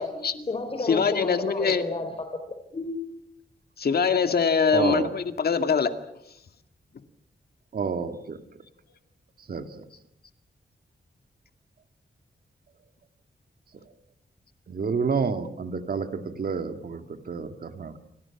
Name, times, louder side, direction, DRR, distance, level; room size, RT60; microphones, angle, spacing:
voice 1, 0.0-2.9, left 2 dB, 35° left, 5 dB, 4.0 m, -32 dB
voice 2, 0.8-1.8 3.8-5.9, left 6 dB, 65° left, 8 dB, 2.2 m, -23 dB
voice 3, 4.7-5.1 7.7-8.4 9.5-9.8 14.7-18.0, right 5 dB, 60° right, 8 dB, 2.3 m, -29 dB
29.5 x 25.5 x 6.0 m, 0.76 s
wide cardioid pair, 135°, 17 cm